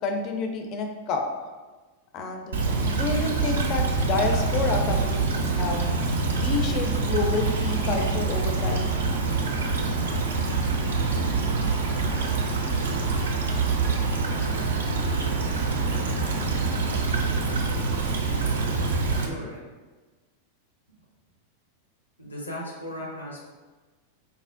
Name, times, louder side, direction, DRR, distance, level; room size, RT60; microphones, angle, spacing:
voice 1, 0.0-1.2 2.1-2.6 2.9-5.9 6.3-8.9, left 4 dB, 40° left, 3 dB, 0.4 m, -29 dB
Stream / Trickle dribble, 2.5-19.3, right 4 dB, 65° right, 0.4 m, -25 dB
voice 2, 19.2-19.6 22.2-23.4, equal, 80° left, -3 dB, 0.7 m, -37 dB
4.3 x 2.0 x 2.5 m, 1.3 s
figure-of-eight pair, 90°, 0 cm